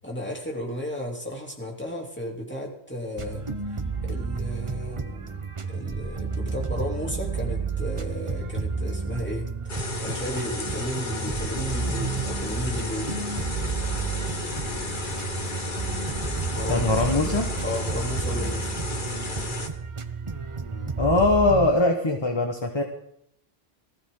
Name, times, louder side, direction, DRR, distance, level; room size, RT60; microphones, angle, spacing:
voice 1, 0.0-3.5 4.0-5.4 5.7-9.5 10.0-13.2 16.5-16.9 17.2-17.4 17.6-18.7, left 1 dB, 10° left, -1 dB, 3.3 m, -34 dB
sound 1, 3.2-21.7, right 4 dB, 30° right, 0.9 m, -31 dB
sound 2, 9.7-19.7, left 3 dB, 50° left, 1.6 m, -33 dB
voice 2, 16.7-17.5 21.0-22.8, left 2 dB, 25° left, 3 dB, 1.5 m, -21 dB
19.5 x 15.5 x 4.0 m, 0.73 s
omnidirectional pair, 1.1 m